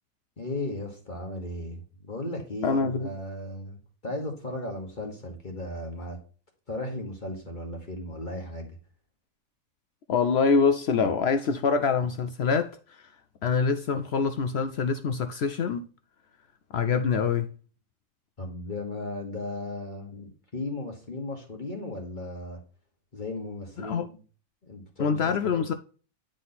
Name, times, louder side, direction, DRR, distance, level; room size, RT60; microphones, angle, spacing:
voice 1, 0.4-6.2 6.7-8.8 18.4-22.6 23.1-24.2 24.6-25.6, left 2 dB, 35° left, 1.4 m, -36 dB
voice 2, 2.6-3.1 10.1-13.1 13.4-15.8 16.7-17.5 23.8-24.1 25.0-25.7, left 5 dB, 65° left, 0.7 m, -25 dB
9.3 x 3.8 x 4.0 m
omnidirectional pair, 1.4 m